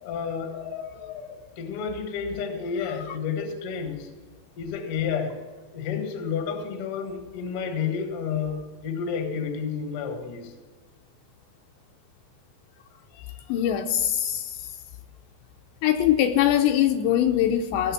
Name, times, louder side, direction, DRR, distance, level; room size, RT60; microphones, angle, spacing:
voice 1, 0.0-0.5 0.9-1.0 1.6-4.1 4.6-5.3 5.7-10.5, left 6 dB, 65° left, 5 dB, 1.4 m, -30 dB
voice 2, 0.5-1.4 13.2-14.6 15.8-17.9, left 11 dB, 85° left, 5 dB, 2.7 m, -23 dB
17.0 x 6.7 x 7.4 m, 1.3 s
omnidirectional pair, 5.4 m